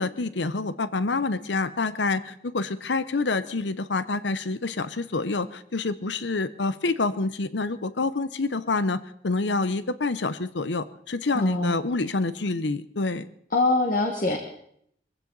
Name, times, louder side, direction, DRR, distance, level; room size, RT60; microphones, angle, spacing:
voice 1, 0.0-13.3, left 3 dB, 90° left, 14 dB, 0.9 m, -27 dB
voice 2, 11.3-11.7 13.5-14.4, left 2 dB, 50° left, 1 dB, 1.6 m, -23 dB
22.5 x 15.5 x 4.0 m, 0.69 s
head